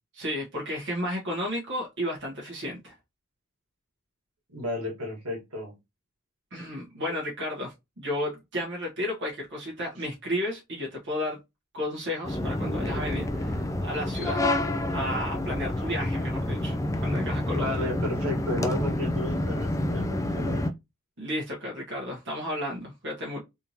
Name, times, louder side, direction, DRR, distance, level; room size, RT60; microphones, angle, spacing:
voice 1, 0.1-2.9 6.5-11.4 11.7-14.5 14.9-16.8 17.0-17.7 21.2-23.4, left 1 dB, 55° right, 1.2 m, -33 dB
voice 2, 4.5-5.7 17.6-20.7, left 1 dB, 80° right, 1.7 m, -33 dB
sound 1, 12.2-20.7, left 1 dB, 15° left, 0.3 m, -28 dB
3.5 x 2.7 x 2.8 m
head